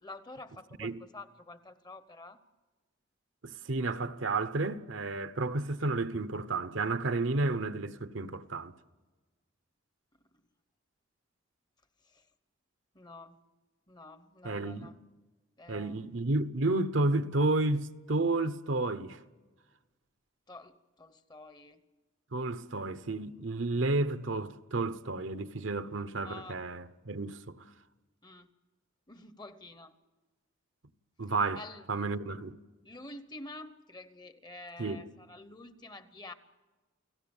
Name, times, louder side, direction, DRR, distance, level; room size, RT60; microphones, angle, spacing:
voice 1, 0.0-2.4 12.9-13.4 13.9-15.0 15.6-16.0 20.5-21.8 26.2-26.6 28.2-28.5 29.1-29.9 31.6-31.8 32.8-36.3, left 2 dB, 20° left, 1.0 m, -48 dB
voice 2, 3.4-8.7 14.4-14.9 15.7-19.2 22.3-27.6 31.2-31.6 31.9-32.6 34.8-35.1, right 2 dB, 65° right, 0.9 m, -31 dB
29.5 x 18.0 x 7.2 m
head